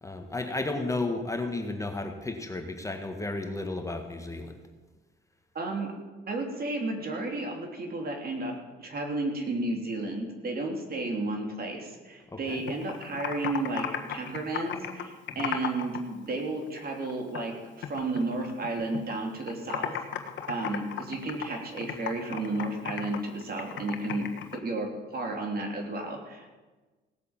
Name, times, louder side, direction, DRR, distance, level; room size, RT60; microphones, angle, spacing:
voice 1, 0.0-4.6 12.3-12.6 15.3-15.6, left 2 dB, 15° left, 4 dB, 1.7 m, -33 dB
voice 2, 5.5-5.9 6.3-19.9 20.5-26.5, right 2 dB, 50° right, 2 dB, 3.3 m, -33 dB
Computer keyboard, 12.5-16.0 16.3-17.5 17.8-19.1 19.4-24.6, left 9 dB, 70° left, 1.5 m, -35 dB
17.5 x 8.2 x 7.4 m, 1.3 s
cardioid pair, 90°, 20 cm